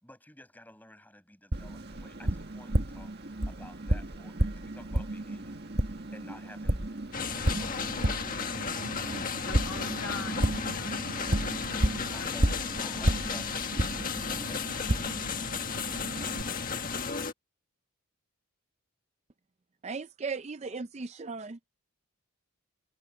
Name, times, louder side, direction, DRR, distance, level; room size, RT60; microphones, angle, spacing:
voice 1, 0.0-8.3 12.1-14.0 14.3-15.0, left 1 dB, 10° left, 6.2 m, -53 dB
Tap, 1.5-16.4, right 1 dB, 50° right, 1.8 m, -32 dB
sound 1, 7.1-17.3, left 5 dB, 40° left, 1.6 m, -34 dB
voice 2, 9.4-12.4, left 6 dB, 70° left, 1.8 m, -44 dB
voice 3, 19.8-21.6, right 4 dB, 30° right, 0.4 m, -37 dB
head